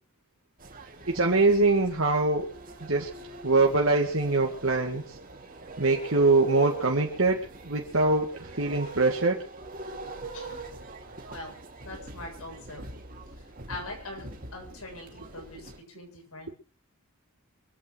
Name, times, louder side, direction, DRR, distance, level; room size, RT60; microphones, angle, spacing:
sound 1, 0.6-15.8, right 2 dB, 40° right, 2.4 m, -43 dB
voice 1, 1.1-2.5 2.9-3.1 3.4-5.0 5.8-9.4, right 3 dB, 65° right, 1 dB, 2.0 m, -23 dB
voice 2, 11.8-12.8 13.3-16.5, left 2 dB, 90° left, 2 dB, 7.6 m, -42 dB
24.5 x 8.7 x 6.1 m, 0.40 s
head